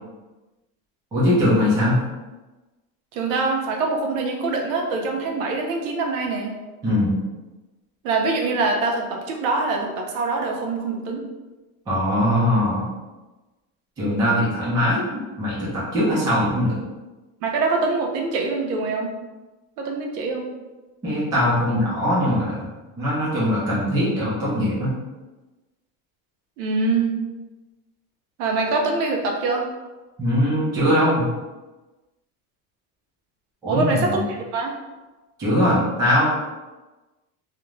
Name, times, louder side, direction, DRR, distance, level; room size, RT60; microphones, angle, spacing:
voice 1, 1.1-2.0 6.8-7.1 11.9-12.9 14.0-16.7 21.0-22.7 23.0-24.9 30.2-31.3 33.6-34.2 35.4-36.2, equal, 10° right, -8 dB, 0.3 m, -21 dB
voice 2, 3.1-6.6 8.0-11.3 17.4-19.1 19.8-20.5 26.6-27.2 28.4-29.7 33.7-34.7, right 3 dB, 70° right, 1 dB, 0.6 m, -24 dB
2.4 x 2.1 x 3.0 m, 1.1 s
cardioid pair, 170°, 42 cm